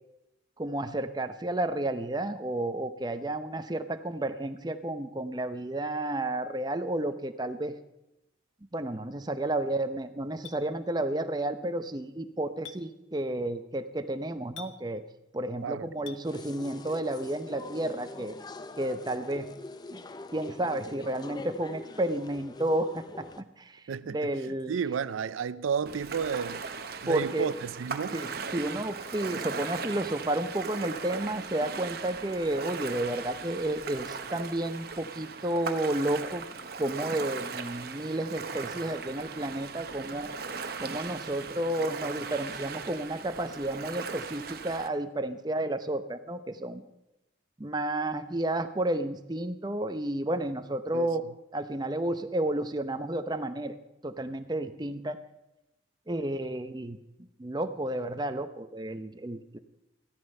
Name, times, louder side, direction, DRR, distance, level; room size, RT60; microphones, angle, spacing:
voice 1, 0.6-7.8 8.7-15.0 15.3-18.3 18.8-19.5 19.9-20.0 20.3-24.7 27.1-27.5 28.1-36.4 36.8-40.3 40.8-46.8 47.6-51.2 51.5-53.7 54.0-55.2 56.1-57.0 57.4-59.6, right 1 dB, 20° right, 0.6 m, -31 dB
Chink clink, 10.4-10.6 12.6-12.8 14.6-14.7 16.1-16.2, left 7 dB, 80° left, 1.0 m, -43 dB
voice 2, 15.6-16.1 23.9-26.6 27.0-28.2 50.9-51.1, right 6 dB, 90° right, 0.4 m, -32 dB
sound 1, 16.2-23.4, left 2 dB, 20° left, 0.4 m, -44 dB
Ocean, 25.9-44.9, right 5 dB, 50° right, 0.9 m, -38 dB
14.5 x 13.0 x 5.4 m
head